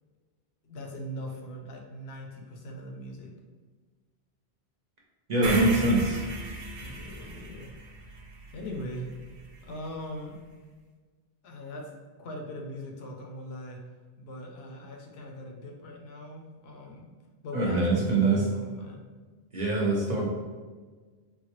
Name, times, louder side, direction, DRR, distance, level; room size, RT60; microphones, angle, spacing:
voice 1, 0.6-3.3 6.8-7.7 8.5-9.1 9.6-10.4 11.4-11.9 12.2-13.8 14.2-17.1 17.4-19.0, equal, 75° left, 1 dB, 0.8 m, -40 dB
voice 2, 5.3-6.2 17.5-18.4 19.5-20.3, right 2 dB, 45° right, -4 dB, 0.7 m, -24 dB
sound 1, 5.4-9.6, right 2 dB, 85° right, 0.9 m, -37 dB
3.8 x 2.2 x 2.9 m, 1.4 s
omnidirectional pair, 1.1 m